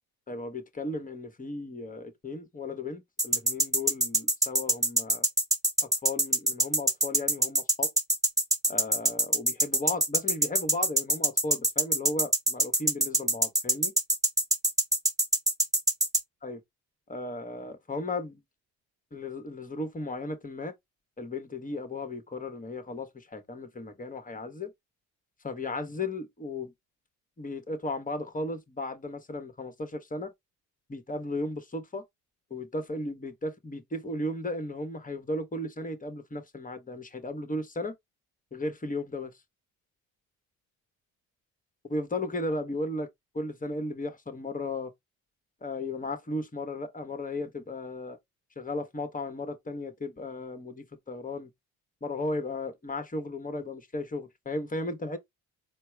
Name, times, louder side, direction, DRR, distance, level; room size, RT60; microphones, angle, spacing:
voice 1, 0.3-5.3 5.8-7.9 8.7-13.9 16.4-16.6 17.1-18.4 19.1-20.7 21.2-24.7 25.4-26.7 27.4-30.3 30.9-32.0 32.5-37.9 38.5-39.3 41.9-43.1 43.3-44.9 45.6-48.2 48.6-51.5 52.0-55.2, left 2 dB, 20° left, 1.2 m, -35 dB
sound 1, 3.2-16.2, right 1 dB, 10° right, 1.4 m, -24 dB
4.4 x 2.0 x 4.5 m
hypercardioid pair, 60°, 40 cm